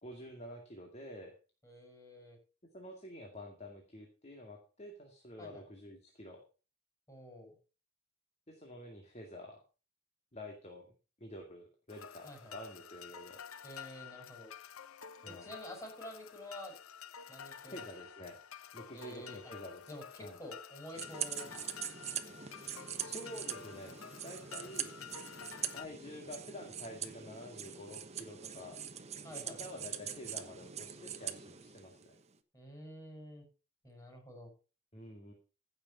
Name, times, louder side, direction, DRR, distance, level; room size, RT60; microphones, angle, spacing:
voice 1, 0.0-1.3 2.7-6.4 8.5-9.6 10.3-10.8 11.2-13.4 15.2-15.5 17.7-18.4 18.7-19.9 20.2-20.4 23.0-24.0 24.2-24.9 25.7-28.9 29.3-32.1 34.9-35.3, left 1 dB, 30° left, 2 dB, 2.2 m, -48 dB
voice 2, 1.6-2.4 5.4-5.7 7.1-7.6 12.2-12.6 13.6-14.5 15.2-16.7 17.3-17.9 18.9-19.5 19.9-21.6 29.2-29.6 32.5-33.4 33.8-34.5, equal, 15° left, 1 dB, 6.3 m, -49 dB
sound 1, 11.9-25.9, left 8 dB, 75° left, 0.8 m, -50 dB
sound 2, 20.9-32.2, right 8 dB, 30° right, 1.0 m, -43 dB
15.5 x 6.8 x 5.7 m, 0.35 s
head